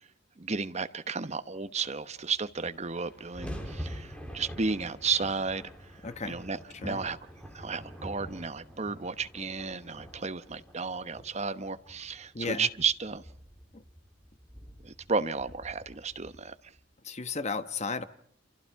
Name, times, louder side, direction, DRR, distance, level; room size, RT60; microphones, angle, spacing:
voice 1, 0.4-5.7 6.2-7.2 7.5-13.2 14.8-16.5, right 4 dB, 35° right, 1.0 m, -33 dB
sound 1, 2.5-16.8, equal, 5° left, 3.8 m, -46 dB
voice 2, 6.0-6.4 6.8-7.0 12.3-12.7 17.0-18.0, left 4 dB, 35° left, 1.1 m, -34 dB
28.5 x 27.5 x 4.7 m
head